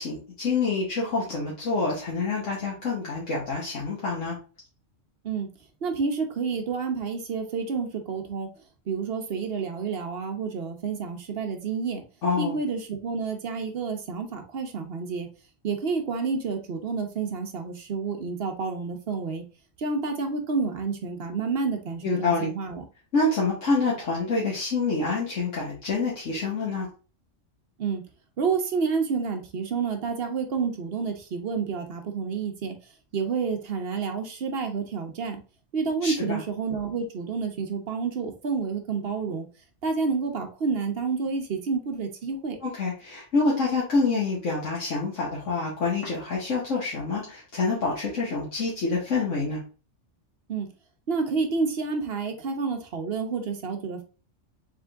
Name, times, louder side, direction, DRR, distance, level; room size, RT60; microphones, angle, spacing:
voice 1, 0.0-4.4 12.2-12.6 22.0-22.5 23.1-26.9 36.0-36.4 42.6-49.6, left 3 dB, 75° left, -4 dB, 1.5 m, -27 dB
voice 2, 5.8-8.5 8.9-12.0 12.4-15.3 15.6-19.4 19.8-22.8 27.8-28.0 28.4-32.7 33.1-35.4 35.7-39.4 39.8-42.6 50.5-50.7 51.1-54.0, right 5 dB, 55° right, 4 dB, 1.0 m, -29 dB
3.7 x 3.6 x 3.4 m, 0.35 s
omnidirectional pair, 1.3 m